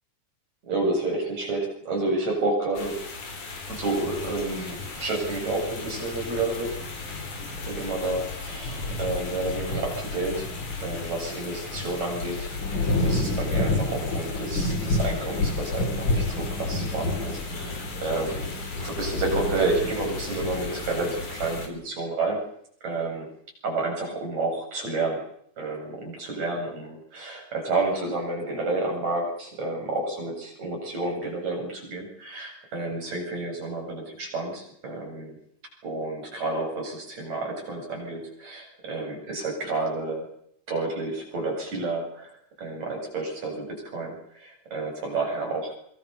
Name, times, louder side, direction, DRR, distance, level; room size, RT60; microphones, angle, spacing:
voice 1, 0.6-3.0 3.7-6.7 7.7-10.5 10.8-18.5 18.8-22.4 22.8-23.3 23.6-25.2 25.6-35.4 35.8-40.3 40.7-42.3 42.6-45.7, right 2 dB, 65° right, 1 dB, 9.4 m, -30 dB
sound 1, 2.7-21.7, left 2 dB, 85° left, 6.0 m, -30 dB
27.0 x 24.5 x 7.0 m, 0.67 s
omnidirectional pair, 3.4 m